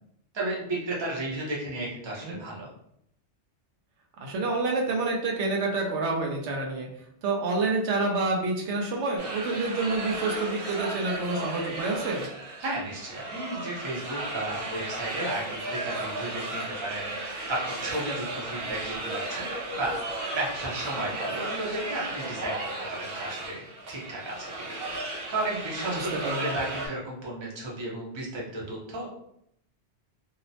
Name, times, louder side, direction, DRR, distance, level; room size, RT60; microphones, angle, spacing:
voice 1, 0.3-2.7 12.6-19.9 20.3-22.5 22.9-23.6 23.9-26.1 26.4-29.1, right 2 dB, 30° right, -4 dB, 0.6 m, -34 dB
voice 2, 4.2-6.9 7.2-12.2 25.9-26.5, right 3 dB, 85° right, -1 dB, 0.9 m, -28 dB
sound 1, 9.2-26.9, right 2 dB, 60° right, 0.9 m, -35 dB
2.8 x 2.0 x 2.7 m, 0.73 s
omnidirectional pair, 1.2 m